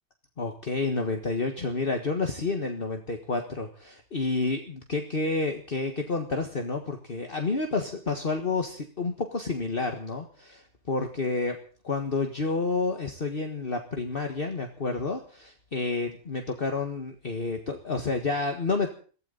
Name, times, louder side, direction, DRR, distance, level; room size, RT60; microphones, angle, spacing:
voice 1, 0.4-11.6 11.8-18.9, left 3 dB, 40° left, 4 dB, 1.8 m, -29 dB
22.5 x 16.0 x 4.0 m, 0.41 s
omnidirectional pair, 1.5 m